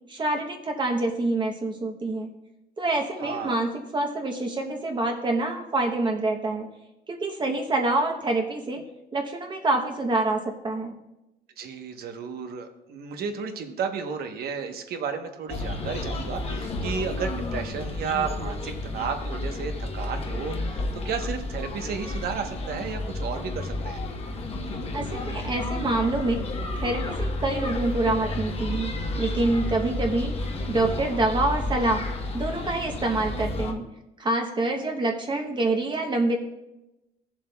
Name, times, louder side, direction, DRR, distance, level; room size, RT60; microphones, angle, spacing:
voice 1, 0.1-2.3 2.8-6.7 7.1-8.8 9.1-10.9 24.9-26.4 26.8-30.4 30.7-32.0 32.3-33.8 34.2-36.4, right 2 dB, 30° right, 3 dB, 0.9 m, -26 dB
voice 2, 3.2-3.6 11.6-24.0, right 6 dB, 70° right, 6 dB, 1.0 m, -33 dB
sound 1, 15.5-33.7, left 2 dB, 35° left, 1.0 m, -31 dB
16.0 x 7.3 x 2.3 m, 0.96 s
cardioid pair, 140°, 16 cm